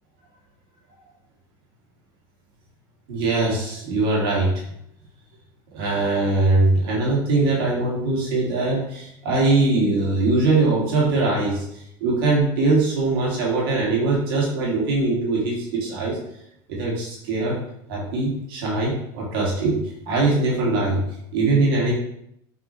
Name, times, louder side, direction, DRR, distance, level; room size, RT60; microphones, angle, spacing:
voice 1, 3.1-4.5 5.7-16.2 16.7-17.6 17.9-21.0 21.3-21.9, right 3 dB, 80° right, -4 dB, 1.7 m, -21 dB
5.8 x 2.8 x 3.0 m, 0.74 s
supercardioid pair, 125°, 12 cm